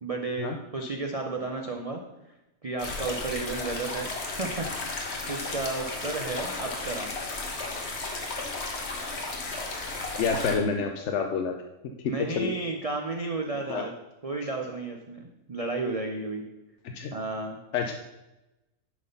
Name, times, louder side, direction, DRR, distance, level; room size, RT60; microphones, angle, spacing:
voice 1, 0.0-2.0 2.6-7.1 12.1-13.9 14.2-16.4 17.1-17.6, right 3 dB, 60° right, 2 dB, 0.3 m, -33 dB
sound 1, 2.8-10.6, left 3 dB, 45° left, 1.5 m, -34 dB
voice 2, 10.2-11.5 12.3-12.5 13.7-13.8 16.9-17.1 17.7-17.9, left 5 dB, 60° left, 4 dB, 0.8 m, -28 dB
10.5 x 4.0 x 5.3 m, 0.99 s
omnidirectional pair, 1.7 m